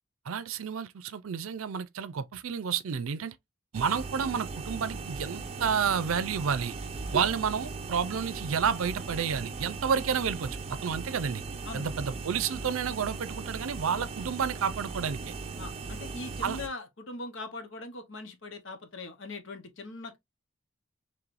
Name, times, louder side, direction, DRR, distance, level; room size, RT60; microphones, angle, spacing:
voice 1, 0.3-3.4 3.7-6.7 7.1-11.4 11.7-15.3 16.4-16.6, right 7 dB, 80° right, 0.5 m, -30 dB
sound 1, 3.7-16.7, right 4 dB, 30° right, 0.5 m, -38 dB
voice 2, 15.6-20.2, left 2 dB, 60° left, 0.9 m, -41 dB
4.7 x 3.2 x 2.5 m
head